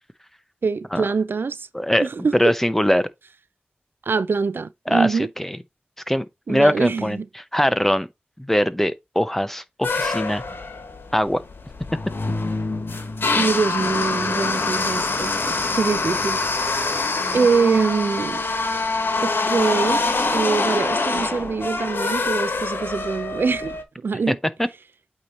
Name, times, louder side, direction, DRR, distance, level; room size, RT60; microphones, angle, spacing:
voice 1, 0.6-1.7 2.0-2.5 4.1-5.3 6.5-7.3 13.3-16.4 17.3-18.4 19.2-20.0 20.3-23.8 24.0-24.4, right 5 dB, 75° right, 0.4 m, -24 dB
voice 2, 1.7-3.1 4.9-5.6 6.1-8.1 8.4-10.4 11.1-11.4 24.3-24.4 24.6-24.7, equal, 10° left, 0.7 m, -22 dB
sound 1, 9.8-23.8, left 3 dB, 75° left, 1.1 m, -25 dB
8.5 x 3.1 x 4.2 m
wide cardioid pair, 70°, 4 cm